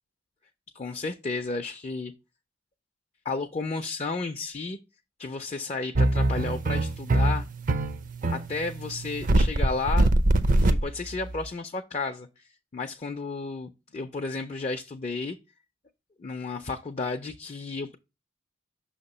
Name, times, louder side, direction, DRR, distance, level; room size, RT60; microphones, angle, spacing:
voice 1, 0.7-2.1 3.2-4.8 5.2-7.4 8.3-10.2 10.4-15.4 16.2-18.0, left 3 dB, 35° left, 0.4 m, -33 dB
sound 1, 6.0-11.5, right 1 dB, 45° right, 0.5 m, -22 dB
6.1 x 2.9 x 5.3 m
head